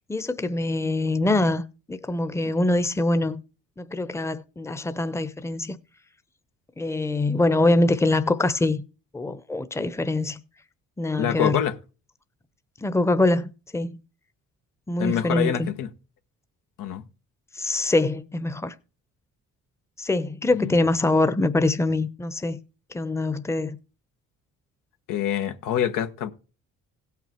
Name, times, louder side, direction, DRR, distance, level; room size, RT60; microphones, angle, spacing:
voice 1, 0.1-1.6 1.9-3.4 3.8-5.8 6.8-8.8 9.1-10.4 11.0-11.6 12.8-14.0 14.9-15.7 17.5-18.7 20.0-22.6 22.9-23.8, left 2 dB, 10° left, 0.8 m, -24 dB
voice 2, 11.2-11.7 15.0-15.9 16.8-17.0 20.5-20.8 25.1-26.3, left 10 dB, 80° left, 1.3 m, -26 dB
17.0 x 5.9 x 4.4 m
cardioid pair, 75°, 32 cm